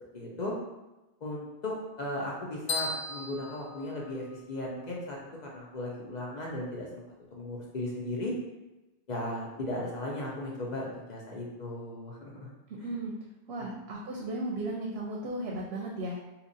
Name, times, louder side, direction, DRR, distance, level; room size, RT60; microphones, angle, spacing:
voice 1, 0.1-0.5 1.2-5.2 5.4-6.9 7.3-8.3 9.1-12.5 12.8-12.9 13.6-13.7, left 1 dB, 50° left, -3 dB, 0.6 m, -36 dB
sound 1, 2.7-4.6, left 3 dB, 85° left, 0.9 m, -36 dB
voice 2, 12.7-13.1 13.5-16.2, right 1 dB, 70° right, -2 dB, 0.8 m, -35 dB
2.8 x 2.5 x 3.8 m, 1.0 s
omnidirectional pair, 1.1 m